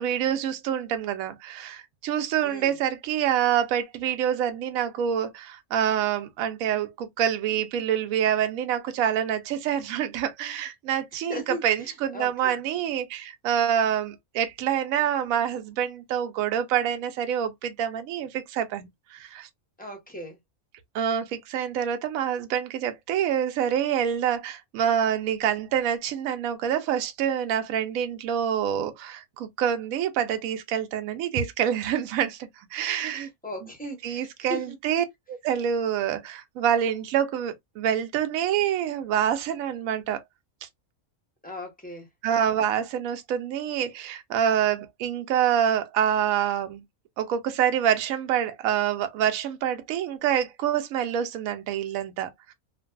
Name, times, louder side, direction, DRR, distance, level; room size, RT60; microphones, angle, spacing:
voice 1, 0.0-19.5 20.9-33.3 34.0-40.2 42.2-46.8 47.2-52.5, right 9 dB, 75° right, 1.0 m, -26 dB
voice 2, 11.1-11.6 12.1-12.6 19.8-20.4 33.0-34.7 41.4-42.1, equal, 10° left, 0.7 m, -37 dB
2.5 x 2.3 x 2.2 m
omnidirectional pair, 1.5 m